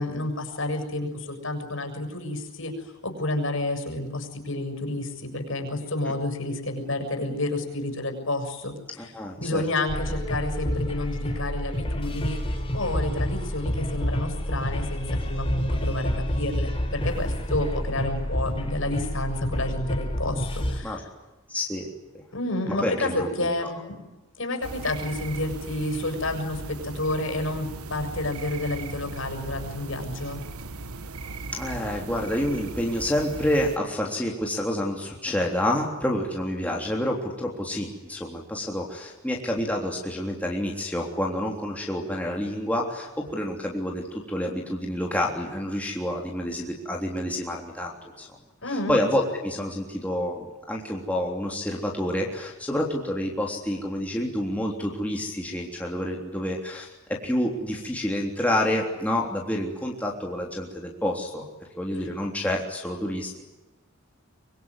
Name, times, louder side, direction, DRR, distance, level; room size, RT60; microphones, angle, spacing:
voice 1, 0.0-9.1 9.4-21.0 22.3-24.0 24.4-30.4 48.6-49.0 61.9-62.1, left 2 dB, 60° left, 5 dB, 7.0 m, -30 dB
voice 2, 9.1-9.6 20.8-21.0 21.5-21.9 22.7-23.3 31.5-48.3 48.7-61.4 61.8-63.3, left 1 dB, 5° left, -1 dB, 3.4 m, -28 dB
sound 1, 9.9-20.8, equal, 25° left, 3.8 m, -29 dB
sound 2, 24.6-33.8, right 3 dB, 85° right, 1.5 m, -38 dB
25.0 x 24.0 x 9.9 m, 1.0 s
head